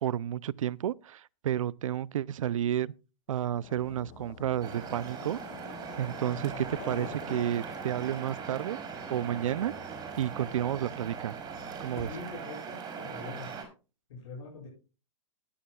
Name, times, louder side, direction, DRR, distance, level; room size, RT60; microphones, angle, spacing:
voice 1, 0.0-2.9 3.3-5.4 6.0-8.8 9.1-9.7 10.2-11.4 11.8-12.1, right 11 dB, 80° right, 0.5 m, -31 dB
sound 1, 3.3-12.5, left 10 dB, 35° left, 1.0 m, -49 dB
sound 2, 4.6-13.7, right 6 dB, 25° right, 4.5 m, -40 dB
voice 2, 6.3-6.6 12.0-13.5 14.1-14.7, left 3 dB, 70° left, 8.0 m, -44 dB
18.5 x 9.9 x 2.3 m
hypercardioid pair, 140°, 17 cm